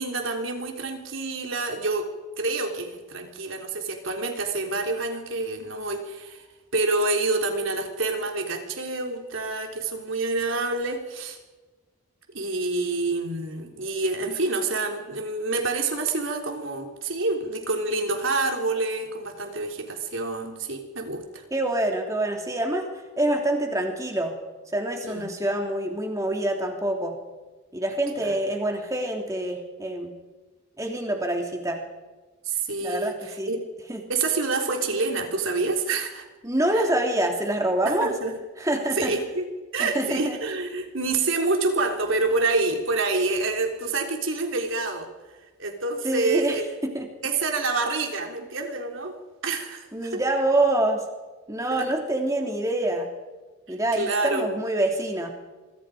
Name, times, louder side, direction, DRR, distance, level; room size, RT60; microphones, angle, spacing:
voice 1, 0.0-2.1 2.4-6.5 6.7-11.4 12.3-21.4 25.0-25.3 28.2-28.4 32.4-33.7 34.1-36.2 36.7-36.9 37.8-38.3 39.0-39.4 39.7-45.1 45.6-46.7 47.2-49.2 49.4-50.2 51.6-51.9 53.7-54.5, right 3 dB, 65° right, 3 dB, 3.7 m, -27 dB
voice 2, 21.5-22.9 23.2-24.3 24.7-27.2 27.7-30.1 30.8-31.8 32.8-33.5 33.9-34.1 36.4-38.1 38.6-39.1 39.8-40.4 46.0-47.1 49.9-51.0 51.5-53.1 53.7-55.3, right 1 dB, 15° right, 2 dB, 3.2 m, -26 dB
26.0 x 24.5 x 5.1 m, 1.2 s
head